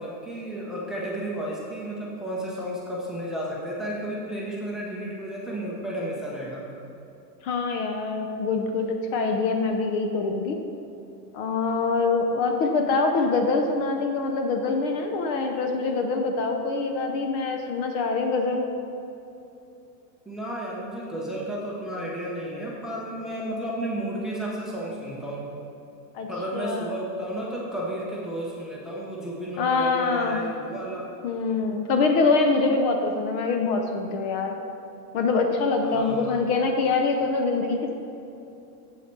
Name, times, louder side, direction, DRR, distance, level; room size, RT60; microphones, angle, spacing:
voice 1, 0.0-6.6 20.3-25.5 26.3-31.1 35.8-36.4, right 1 dB, ahead, -5 dB, 0.6 m, -32 dB
voice 2, 7.4-10.6 11.3-18.6 26.1-26.3 26.5-26.9 29.6-30.4 31.2-34.6 35.1-37.9, left 4 dB, 40° left, 4 dB, 0.6 m, -24 dB
7.4 x 7.3 x 4.5 m, 2.8 s
supercardioid pair, 155°, 48 cm